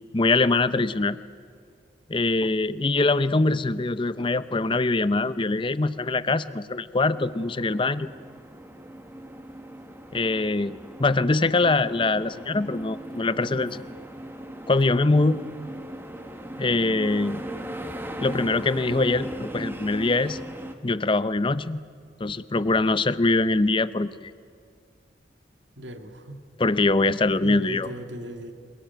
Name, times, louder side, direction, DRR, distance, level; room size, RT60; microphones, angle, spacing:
voice 1, 0.1-1.2 2.1-8.1 10.1-13.8 14.7-15.4 16.6-17.4 18.2-20.4 20.8-21.8 22.2-24.3 26.6-27.9, left 3 dB, 25° left, 14 dB, 0.6 m, -23 dB
sound 1, 7.1-20.7, right 1 dB, 10° right, 1.5 m, -38 dB
voice 2, 25.8-26.4 27.4-28.5, right 1 dB, 75° right, 6 dB, 2.2 m, -37 dB
27.5 x 18.5 x 9.2 m, 2.2 s
head